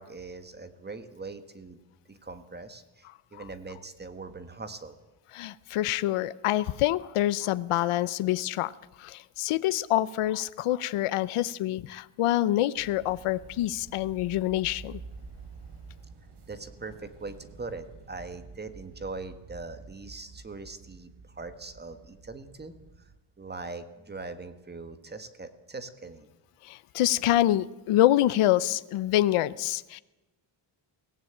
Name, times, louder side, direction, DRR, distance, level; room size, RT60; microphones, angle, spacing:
voice 1, 0.0-1.8 2.1-3.1 3.3-5.0 16.5-23.1 23.4-26.3, right 3 dB, 20° right, 10 dB, 1.5 m, -41 dB
voice 2, 5.3-8.7 9.0-15.0 26.6-30.0, left 14 dB, 85° left, 16 dB, 0.8 m, -26 dB
sound 1, 12.7-23.2, right 4 dB, 55° right, 3.0 m, -49 dB
23.0 x 17.0 x 8.8 m, 1.1 s
cardioid pair, 160°, 50 cm